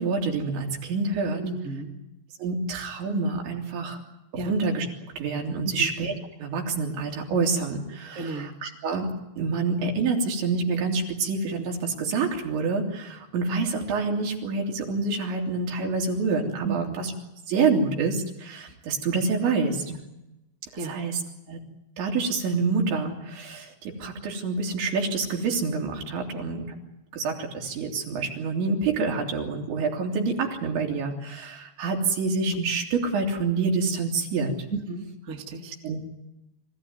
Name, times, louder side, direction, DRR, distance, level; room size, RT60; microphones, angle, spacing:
voice 1, 0.0-1.4 2.4-4.0 4.3-4.9 5.2-6.1 6.4-9.1 9.4-17.1 17.5-19.9 20.8-21.2 21.5-21.6 22.0-26.8 27.1-34.5 35.8-36.0, right 4 dB, 75° right, 1 dB, 5.6 m, -27 dB
voice 2, 1.4-1.9 4.4-4.5 5.6-5.9 8.1-8.5 16.6-17.0 19.9-20.0 20.8-21.0 34.7-35.7, right 3 dB, 25° right, 2 dB, 1.9 m, -33 dB
26.0 x 16.0 x 9.7 m, 0.92 s
omnidirectional pair, 5.3 m